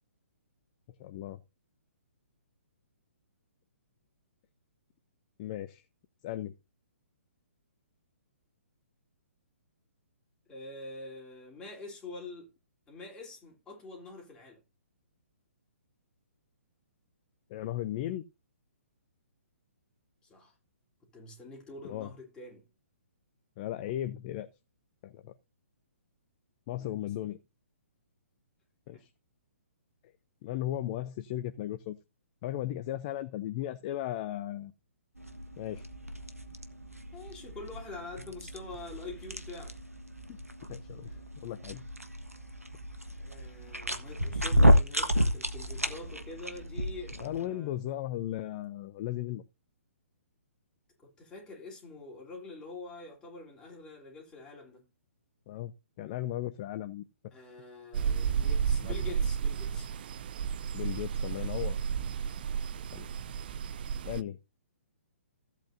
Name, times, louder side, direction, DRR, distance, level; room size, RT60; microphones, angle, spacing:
voice 1, 1.0-1.4 5.4-5.8 6.2-6.5 17.5-18.2 21.9-22.1 23.6-24.5 25.0-25.3 26.7-27.4 28.9-29.1 30.4-32.0 32.4-34.7 35.6-35.8 40.3-40.4 40.7-41.1 41.4-41.8 47.2-49.4 55.5-57.0 58.8-58.9 60.7-61.8 62.9-63.1 64.0-64.4, left 13 dB, 30° left, 0.6 m, -36 dB
voice 2, 10.5-12.5 12.9-14.6 20.2-20.5 21.1-22.7 26.7-27.1 28.9-29.0 37.1-39.8 41.1-41.2 43.2-47.7 51.0-54.8 57.3-59.9, left 3 dB, 10° left, 3.5 m, -46 dB
sound 1, 35.2-47.5, equal, 90° right, 1.4 m, -31 dB
sound 2, 57.9-64.2, right 7 dB, 40° right, 0.5 m, -32 dB
15.5 x 8.3 x 2.7 m
figure-of-eight pair, 125°, 8 cm